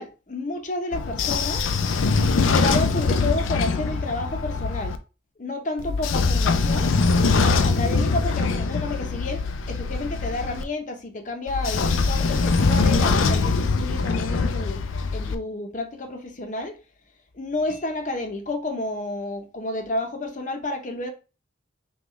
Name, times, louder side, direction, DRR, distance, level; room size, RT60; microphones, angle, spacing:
voice 1, 0.0-1.7 2.4-5.0 5.4-6.9 7.4-14.8 15.1-16.8 17.3-21.1, left 2 dB, 40° left, 0.7 m, -30 dB
Train / Sliding door, 0.9-5.0 5.8-10.6 11.5-15.4, left 4 dB, 80° left, 0.5 m, -22 dB
5.5 x 2.3 x 3.1 m
head